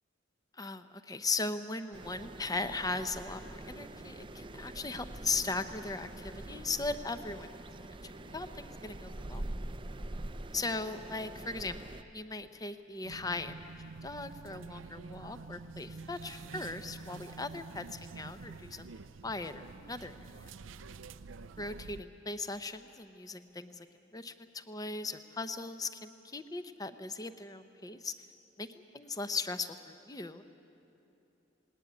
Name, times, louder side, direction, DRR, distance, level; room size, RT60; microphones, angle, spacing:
voice 1, 0.6-7.5 8.0-9.4 10.5-11.8 12.1-13.7 14.0-18.9 19.2-20.5 21.6-23.9 24.1-28.1 28.6-28.7 28.9-30.4, left 3 dB, 20° left, 10 dB, 0.7 m, -38 dB
sound 1, 1.9-12.0, right 1 dB, 25° right, 0.6 m, -44 dB
sound 2, 13.0-22.0, right 4 dB, 90° right, 0.6 m, -48 dB
19.5 x 19.0 x 9.7 m, 2.9 s
head